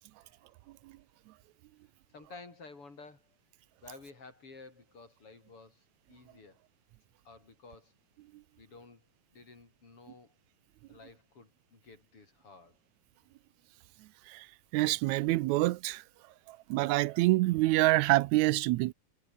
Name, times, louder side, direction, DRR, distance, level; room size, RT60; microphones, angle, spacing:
voice 1, 2.1-3.3 3.8-6.6 7.2-7.9 8.6-9.0 9.3-10.3 10.9-12.8 16.3-16.4, left 3 dB, 45° left, 6.0 m, -53 dB
voice 2, 14.7-16.0 16.5-18.9, right 19 dB, 80° right, 1.9 m, -26 dB
omnidirectional pair, 3.4 m